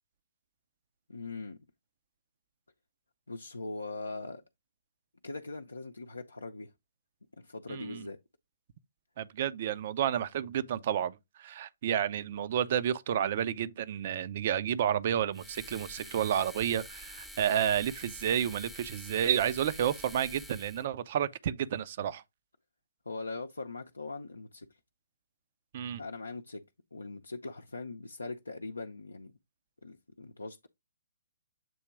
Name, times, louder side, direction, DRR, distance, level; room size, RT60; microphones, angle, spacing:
voice 1, 1.1-1.6 3.3-4.4 5.2-6.7 7.4-8.2 23.1-24.7 26.0-26.6 26.9-29.3 29.8-30.7, left 3 dB, 75° left, 0.6 m, -41 dB
voice 2, 7.7-8.1 9.2-22.2 25.7-26.0, right 9 dB, 40° right, 0.5 m, -31 dB
sound 1, 15.3-20.8, equal, ahead, 0.7 m, -47 dB
7.7 x 2.9 x 4.6 m
figure-of-eight pair, 125°, 0 cm